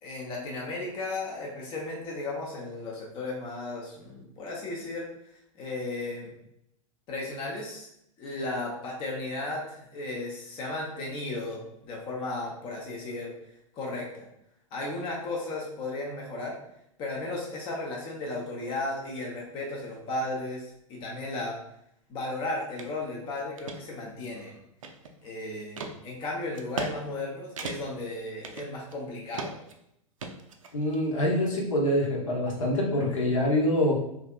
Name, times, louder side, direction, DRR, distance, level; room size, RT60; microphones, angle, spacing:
voice 1, 0.0-5.0 5.6-6.3 7.1-7.9 8.2-13.3 13.8-14.3 14.7-16.5 17.0-21.6 22.1-24.5 25.2-29.6, left 2 dB, 30° left, -2 dB, 0.6 m, -35 dB
sound 1, 22.8-22.9 23.4-23.8 24.3-25.3 25.8-25.9 26.5-26.9 27.2-27.3 27.6-28.0 28.4-29.0 29.3-29.7 30.2-31.0, right 4 dB, 70° right, 0.4 m, -37 dB
voice 2, 30.7-34.0, left 1 dB, 65° left, -3 dB, 0.9 m, -25 dB
3.3 x 2.5 x 2.2 m, 0.76 s
figure-of-eight pair, 95°, 18 cm